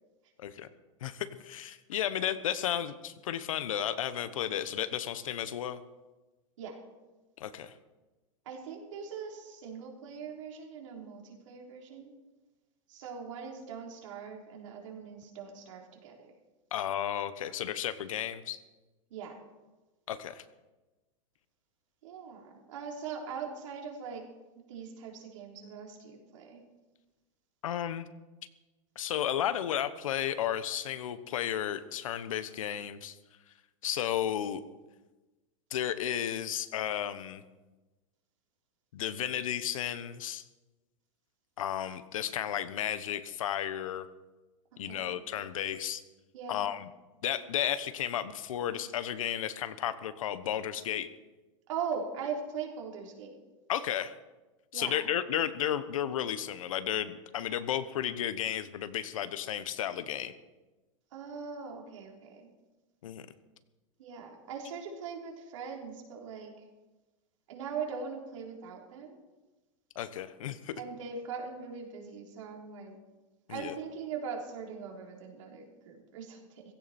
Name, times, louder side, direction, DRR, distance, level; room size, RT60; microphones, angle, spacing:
voice 1, 1.0-5.8 7.4-7.7 16.7-18.6 20.1-20.4 27.6-28.1 28.9-33.2 33.8-34.6 35.7-37.4 38.9-40.4 41.6-44.1 44.8-46.0 46.5-46.9 47.2-51.1 53.7-54.1 54.7-60.3 63.0-63.3 69.9-70.7 73.5-73.7, left 10 dB, 75° left, 12 dB, 1.2 m, -33 dB
voice 2, 8.5-12.1 12.9-16.3 19.1-19.4 22.0-24.3 24.7-26.6 44.7-45.2 46.3-46.7 51.7-53.4 54.7-55.0 61.1-62.5 64.0-66.5 67.5-69.2 70.8-73.0 73.5-76.6, right 6 dB, 65° right, 0 dB, 3.8 m, -41 dB
16.0 x 16.0 x 4.4 m, 1.1 s
supercardioid pair, 170°, 17 cm